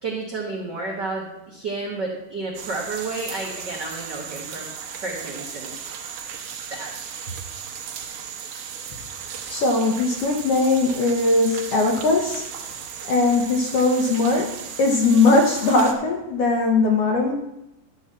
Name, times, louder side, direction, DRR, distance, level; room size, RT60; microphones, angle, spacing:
voice 1, 0.0-4.7 5.0-5.7 6.7-7.2, right 3 dB, 90° right, -2 dB, 0.9 m, -31 dB
sound 1, 2.5-15.9, right 7 dB, 70° right, 2.1 m, -36 dB
voice 2, 9.5-12.5 13.1-14.5 14.8-17.3, left 3 dB, 85° left, 1 dB, 1.3 m, -19 dB
11.5 x 4.1 x 7.4 m, 0.88 s
omnidirectional pair, 3.9 m